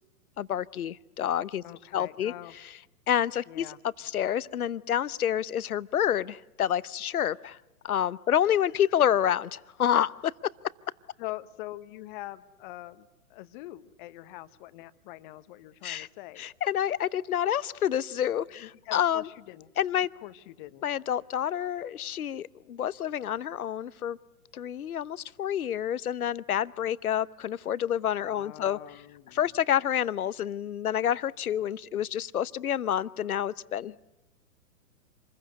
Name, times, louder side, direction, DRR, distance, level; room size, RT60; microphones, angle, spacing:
voice 1, 0.4-1.6 1.9-2.3 3.1-3.7 4.0-7.6 7.8-10.3 15.8-16.1 16.4-19.3 19.8-20.1 20.8-24.2 24.5-28.8 29.3-34.0, left 10 dB, 70° left, 19 dB, 0.9 m, -28 dB
voice 2, 1.6-2.6 3.5-3.8 8.4-8.5 11.2-16.4 18.4-19.7 20.2-20.9 28.2-29.4, left 17 dB, 35° left, 13 dB, 1.2 m, -43 dB
27.0 x 21.5 x 8.1 m, 1.0 s
figure-of-eight pair, 115°, 45 cm